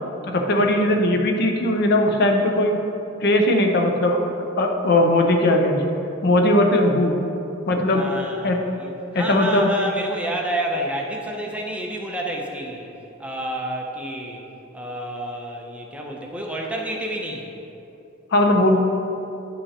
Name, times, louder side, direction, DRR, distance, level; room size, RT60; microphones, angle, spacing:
voice 1, 0.2-2.8 3.2-4.2 4.6-5.8 6.2-7.2 7.7-8.0 8.4-8.6 9.1-9.7 18.3-18.8, left 1 dB, 55° left, 3 dB, 0.6 m, -19 dB
voice 2, 7.9-12.9 13.2-14.4 14.7-17.5, right 1 dB, 5° right, -1 dB, 0.6 m, -29 dB
9.6 x 5.6 x 2.8 m, 2.8 s
head